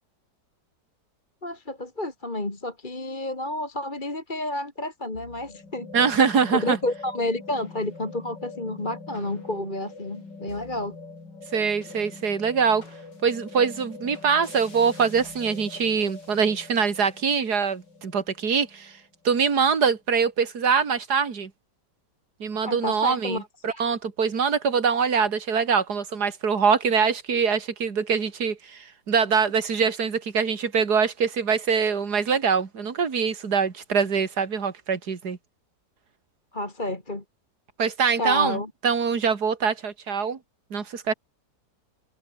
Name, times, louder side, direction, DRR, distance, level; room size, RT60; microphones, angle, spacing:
voice 1, 1.4-11.0 22.6-23.8 36.5-37.2 38.1-38.7, left 1 dB, 25° left, 3.0 m, -30 dB
sound 1, 5.1-19.6, left 3 dB, 90° left, 5.0 m, -44 dB
voice 2, 5.9-6.8 11.5-12.8 13.2-18.9 19.2-21.5 22.4-35.4 37.8-38.6 38.8-40.4 40.7-41.1, right 6 dB, 65° right, 2.9 m, -23 dB
omnidirectional pair, 1.8 m